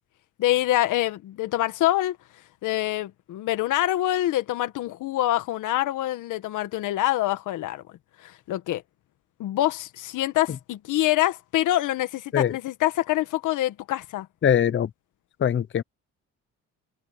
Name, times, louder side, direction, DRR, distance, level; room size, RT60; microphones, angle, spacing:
voice 1, 0.4-2.2 2.6-7.8 8.2-8.8 9.4-14.3, left 14 dB, 90° left, 1.6 m, -25 dB
voice 2, 14.4-14.9 15.4-15.8, left 9 dB, 40° left, 0.7 m, -21 dB
cardioid pair, 90°, 30 cm